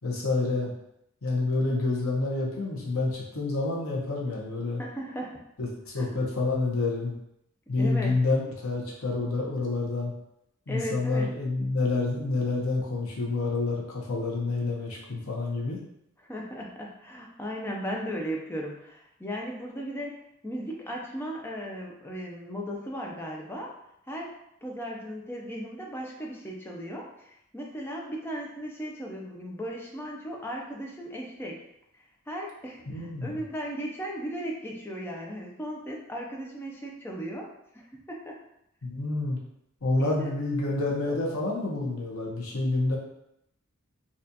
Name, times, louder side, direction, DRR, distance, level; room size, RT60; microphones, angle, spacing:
voice 1, 0.0-0.7 1.2-4.8 5.6-7.1 7.7-10.1 10.7-15.8 32.9-33.4 38.8-39.4 39.8-43.0, left 3 dB, 85° left, -2 dB, 0.9 m, -28 dB
voice 2, 4.8-5.4 6.0-6.1 7.8-8.1 10.7-11.3 16.3-20.2 20.4-23.7 24.1-31.6 32.3-37.5 37.7-38.3 40.0-40.3, equal, 10° left, -1 dB, 0.5 m, -36 dB
4.1 x 2.4 x 2.7 m, 0.78 s
head